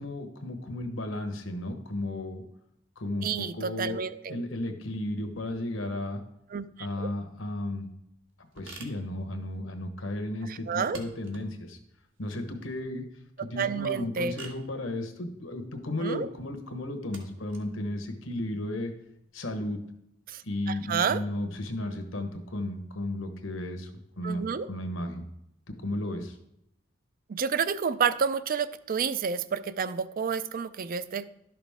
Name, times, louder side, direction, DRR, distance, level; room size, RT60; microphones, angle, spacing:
voice 1, 0.0-2.4 3.0-4.0 4.3-6.2 6.8-7.9 8.5-11.8 12.2-13.0 13.4-18.9 19.3-19.8 20.4-23.9 24.2-25.2 25.8-26.4, left 1 dB, 85° left, 7 dB, 1.2 m, -34 dB
voice 2, 3.2-4.4 6.5-7.1 10.5-11.0 13.6-14.4 16.0-16.3 20.3-21.2 24.2-24.7 27.3-31.2, right 6 dB, 45° right, 15 dB, 0.4 m, -30 dB
sound 1, 7.3-19.6, right 4 dB, 70° right, 1.4 m, -53 dB
12.0 x 5.9 x 3.6 m, 0.79 s
head